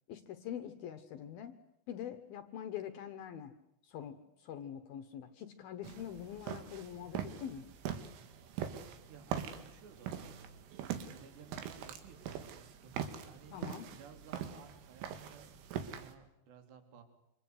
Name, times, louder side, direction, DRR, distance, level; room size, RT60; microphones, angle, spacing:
voice 1, 0.1-1.5 1.9-3.5 3.8-7.7 13.5-13.9, left 9 dB, 70° left, 9 dB, 2.4 m, -44 dB
sound 1, 5.8-16.1, right 8 dB, 75° right, 4.4 m, -43 dB
voice 2, 9.1-15.5 15.8-17.0, right 6 dB, 60° right, 6 dB, 5.1 m, -57 dB
27.5 x 26.5 x 8.1 m, 0.79 s
omnidirectional pair, 5.7 m